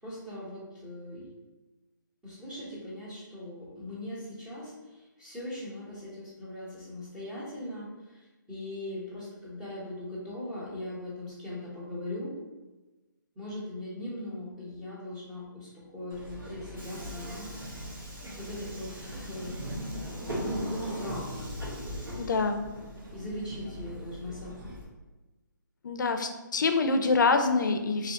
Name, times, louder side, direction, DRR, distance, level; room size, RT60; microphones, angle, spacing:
voice 1, 0.0-1.3 2.2-12.4 13.3-17.8 18.4-19.9 20.4-21.5 23.1-24.8, left 1 dB, 5° right, -8 dB, 0.9 m, -40 dB
Subway metro underground, 16.1-24.8, equal, 80° right, 1.3 m, -39 dB
voice 2, 22.2-22.6 25.8-28.1, left 4 dB, 65° left, 7 dB, 0.4 m, -26 dB
3.0 x 2.7 x 2.8 m, 1.2 s
hypercardioid pair, 155°, 11 cm